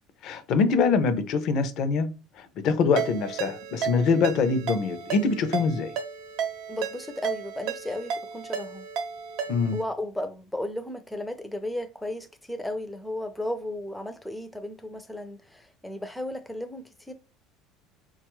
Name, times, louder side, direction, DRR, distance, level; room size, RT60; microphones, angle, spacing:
voice 1, 0.2-2.1 2.4-5.9 9.5-9.8, left 5 dB, 60° left, 0.6 m, -24 dB
Ringtone, 3.0-9.8, right 7 dB, 75° right, 0.7 m, -33 dB
voice 2, 6.7-8.9 9.7-17.1, left 1 dB, 5° left, 0.5 m, -34 dB
3.7 x 2.3 x 3.0 m
supercardioid pair, 115°, 0 cm